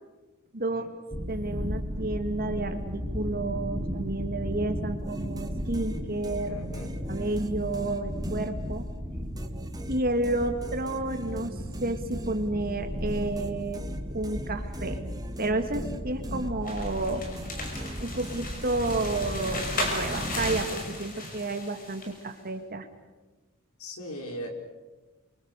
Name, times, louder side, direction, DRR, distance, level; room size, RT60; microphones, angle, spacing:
voice 1, 0.5-0.9 1.3-6.6 7.1-8.8 9.9-13.8 14.1-15.0 15.4-17.2 18.0-22.9, right 2 dB, 45° right, 6 dB, 2.5 m, -31 dB
sound 1, 1.1-20.6, equal, ahead, 4.3 m, -36 dB
sound 2, 5.0-9.0 9.4-17.0 17.4-20.8, right 1 dB, 20° right, 2.0 m, -41 dB
voice 2, 6.5-7.0 23.8-24.5, equal, 90° left, 4 dB, 5.0 m, -39 dB
sound 3, 16.6-22.2, left 2 dB, 40° left, 6.1 m, -35 dB
28.5 x 25.0 x 6.8 m, 1.2 s
head